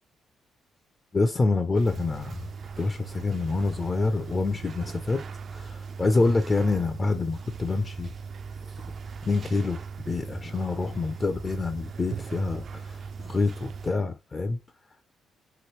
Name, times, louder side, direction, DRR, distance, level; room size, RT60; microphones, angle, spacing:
voice 1, 1.1-2.5 2.8-5.2 5.5-8.1 9.3-14.6, left 3 dB, 30° left, 0.4 m, -27 dB
sound 1, 1.7-13.9, right 5 dB, 50° right, 0.3 m, -39 dB
3.0 x 2.6 x 3.0 m
cardioid pair, 90°, 0 cm